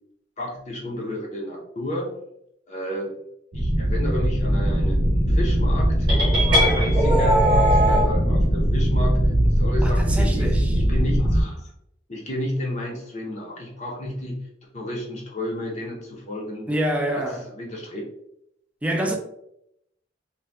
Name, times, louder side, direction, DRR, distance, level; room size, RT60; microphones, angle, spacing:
voice 1, 0.4-2.2 2.7-3.1 3.5-6.1 6.3-10.6 10.9-11.7 12.1-14.5 14.7-16.7 17.1-17.2 17.5-18.1, left 1 dB, 40° left, 0.6 m, -31 dB
sound 1, 3.5-11.4, equal, 50° right, 0.6 m, -20 dB
sound 2, 6.1-8.1, right 1 dB, 25° right, 0.9 m, -20 dB
voice 2, 9.8-10.8 16.7-17.5 18.8-19.1, right 1 dB, 5° right, 0.4 m, -26 dB
2.6 x 2.2 x 3.3 m
head